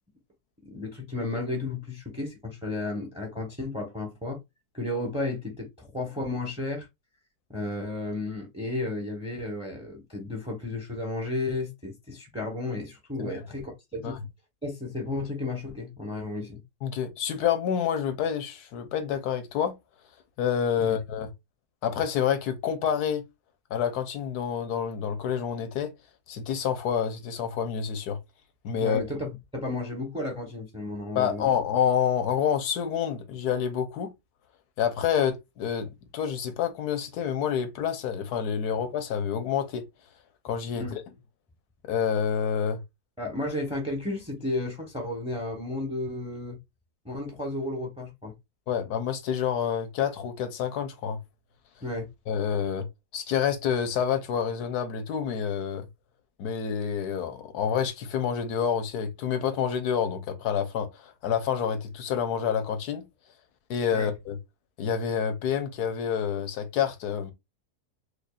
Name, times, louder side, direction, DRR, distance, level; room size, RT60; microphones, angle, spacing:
voice 1, 0.6-4.4 4.7-6.9 7.5-14.2 14.6-16.6 20.8-21.0 28.8-31.5 40.7-41.0 43.2-46.6 47.0-48.3 51.8-52.1 63.9-64.1, left 2 dB, 5° right, 0.7 m, -33 dB
voice 2, 16.8-19.7 20.4-21.3 21.8-23.2 23.7-25.9 26.3-28.2 28.6-29.0 31.1-34.1 34.8-39.8 40.4-41.0 41.8-42.8 48.7-51.2 52.3-52.9 53.1-55.9 56.4-63.1 63.7-64.4 64.8-67.3, left 8 dB, 75° left, 1.2 m, -28 dB
5.0 x 2.3 x 2.3 m
omnidirectional pair, 1.7 m